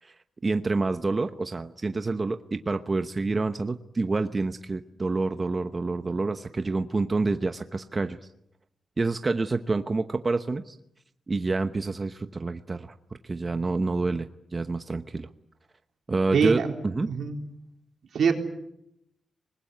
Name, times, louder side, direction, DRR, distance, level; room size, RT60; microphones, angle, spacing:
voice 1, 0.0-8.2 9.0-10.8 11.3-15.3 16.1-17.1, right 3 dB, 35° right, 9 dB, 1.0 m, -28 dB
voice 2, 16.3-16.7 17.1-17.3 18.1-18.3, right 6 dB, 80° right, 3 dB, 3.9 m, -23 dB
26.0 x 20.5 x 9.6 m, 0.80 s
cardioid pair, 90°, 0 cm